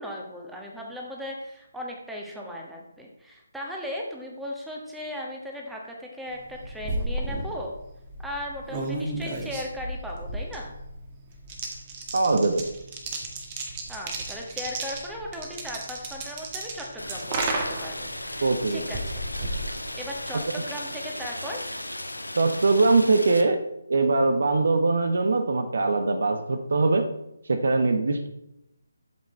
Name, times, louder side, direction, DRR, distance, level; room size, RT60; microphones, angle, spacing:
voice 1, 0.0-7.7 8.2-10.7 13.9-19.2 19.9-21.6, equal, ahead, -2 dB, 1.5 m, -37 dB
sound 1, 6.4-20.4, right 2 dB, 25° right, 1.8 m, -34 dB
voice 2, 12.1-12.7 18.4-18.8 20.3-20.4 22.4-23.6 23.9-27.1 27.5-28.3, right 3 dB, 55° right, 8 dB, 1.0 m, -22 dB
Rain, 17.0-23.4, left 1 dB, 80° left, 1.4 m, -36 dB
12.0 x 7.3 x 4.4 m, 0.84 s
figure-of-eight pair, 145°, 0 cm